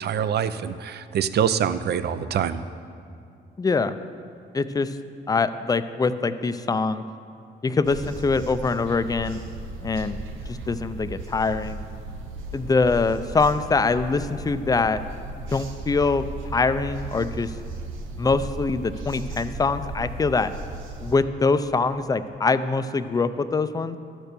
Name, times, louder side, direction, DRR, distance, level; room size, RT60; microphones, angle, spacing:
voice 1, 0.0-2.6, right 8 dB, 55° right, 12 dB, 0.5 m, -25 dB
voice 2, 3.6-4.0 4.5-4.9 5.3-7.0 7.6-9.4 9.8-10.2 10.5-11.8 12.5-15.0 15.5-17.5 18.2-20.5 21.0-24.0, left 4 dB, 20° left, 12 dB, 0.4 m, -23 dB
sound 1, 7.8-21.2, right 2 dB, 80° right, 0.9 m, -36 dB
12.5 x 4.5 x 6.7 m, 2.5 s
cardioid pair, 90°, 20 cm